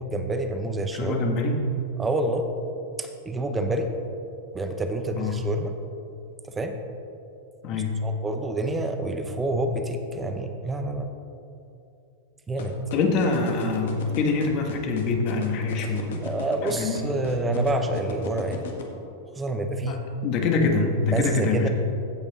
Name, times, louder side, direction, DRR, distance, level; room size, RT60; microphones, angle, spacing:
voice 1, 0.0-1.2 2.0-2.5 3.0-3.9 4.5-5.7 6.5-6.8 8.0-11.1 12.5-12.7 16.2-18.6 19.4-20.0 21.1-21.7, right 2 dB, 10° right, 6 dB, 0.7 m, -27 dB
voice 2, 0.9-1.6 5.2-5.5 7.6-8.1 12.9-16.2 16.6-17.0 19.9-21.7, left 3 dB, 40° left, 3 dB, 1.4 m, -25 dB
sound 1, 12.6-18.8, left 5 dB, 80° left, 1.5 m, -36 dB
15.5 x 5.7 x 4.1 m, 2.7 s
supercardioid pair, 150°, 0 cm